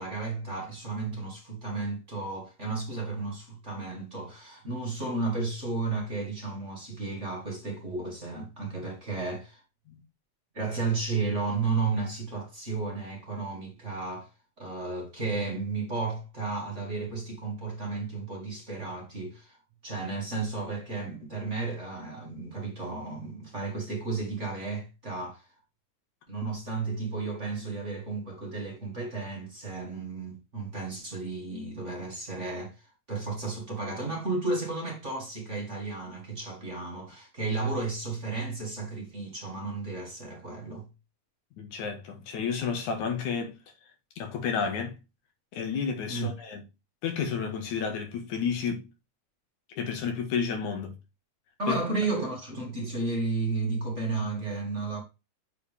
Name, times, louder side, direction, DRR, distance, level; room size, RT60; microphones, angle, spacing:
voice 1, 0.0-9.6 10.5-14.3 14.6-19.6 19.8-25.5 26.3-40.9 46.1-46.3 51.6-55.0, right 3 dB, 25° right, 2.1 m, -33 dB
voice 2, 41.6-43.5 44.2-45.0 45.5-46.6 47.0-48.9 49.8-50.9 51.7-51.8, left 6 dB, 90° left, 3.2 m, -31 dB
7.8 x 4.7 x 3.5 m
omnidirectional pair, 3.3 m